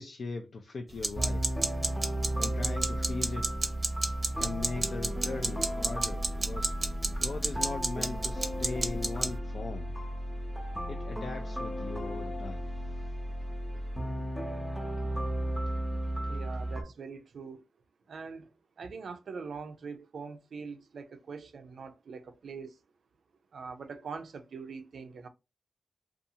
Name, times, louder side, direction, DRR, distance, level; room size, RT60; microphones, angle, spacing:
voice 1, 0.0-1.5 2.4-3.5 4.4-6.7 7.2-9.9 10.9-13.2 13.7-13.8, left 3 dB, 65° left, 0.3 m, -39 dB
sound 1, 1.0-9.4, right 2 dB, 35° right, 0.6 m, -32 dB
sound 2, 1.1-16.8, right 1 dB, 5° left, 0.7 m, -34 dB
voice 2, 16.3-17.6 18.1-18.5 18.8-22.8 23.5-25.3, right 5 dB, 80° right, 0.4 m, -43 dB
2.7 x 2.3 x 2.6 m
wide cardioid pair, 85°, 0 cm